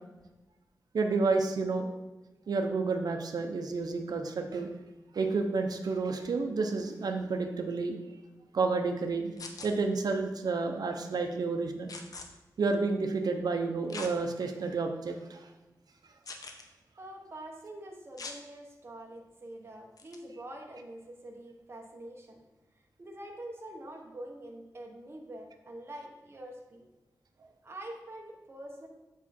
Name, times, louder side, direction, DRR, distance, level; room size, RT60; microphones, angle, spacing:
voice 1, 0.9-1.9 2.5-4.7 5.1-8.0 8.5-9.3 9.6-11.9 12.6-15.5, right 4 dB, 75° right, 4 dB, 0.7 m, -30 dB
sound 1, 9.4-9.7 11.9-12.3 13.9-14.1 14.7-14.8 16.2-16.6 18.2-18.4 20.0-20.2, left 3 dB, 65° left, 0.8 m, -42 dB
voice 2, 17.0-22.4 23.0-26.9 27.6-28.9, right 1 dB, 40° right, 0 dB, 1.1 m, -45 dB
7.1 x 4.8 x 4.3 m, 1.1 s
wide cardioid pair, 110°, 7 cm